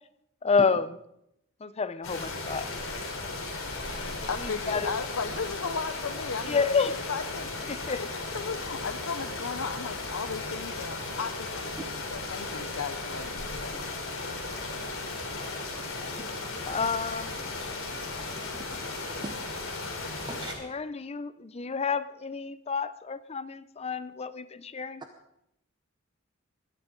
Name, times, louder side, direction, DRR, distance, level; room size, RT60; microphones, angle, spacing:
voice 1, 0.4-1.0 1.6-2.7 4.4-5.0 6.4-6.9 7.7-8.0 16.7-17.7 20.4-25.0, left 5 dB, 30° left, 13 dB, 0.6 m, -30 dB
sound 1, 2.0-20.6, left 3 dB, 70° left, 3.9 m, -36 dB
voice 2, 4.3-6.6 6.9-7.6 7.9-8.1 8.3-14.3, left 5 dB, 85° left, 7 dB, 0.7 m, -36 dB
voice 3, 19.1-19.6 20.1-20.6, right 2 dB, 20° right, 4 dB, 0.9 m, -42 dB
20.0 x 12.5 x 3.9 m, 0.79 s
head